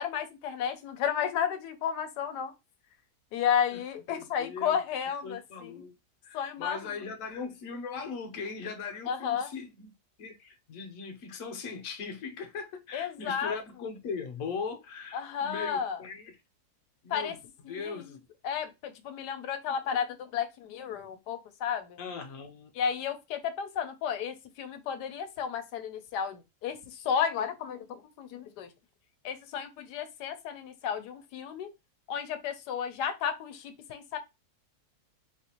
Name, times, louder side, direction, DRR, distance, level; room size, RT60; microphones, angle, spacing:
voice 1, 0.0-2.5 3.3-5.7 6.3-6.8 9.1-9.5 12.9-13.6 15.1-16.0 17.1-17.3 17.6-18.0 18.4-22.0 22.7-28.7 29.2-31.7 32.1-34.2, left 8 dB, 90° left, 1.2 m, -32 dB
voice 2, 4.1-4.8 5.2-5.9 6.2-9.9 10.2-16.3 17.0-17.4 17.7-18.2 22.0-22.7, left 5 dB, 60° left, 1.1 m, -39 dB
4.0 x 2.5 x 2.8 m
omnidirectional pair, 1.7 m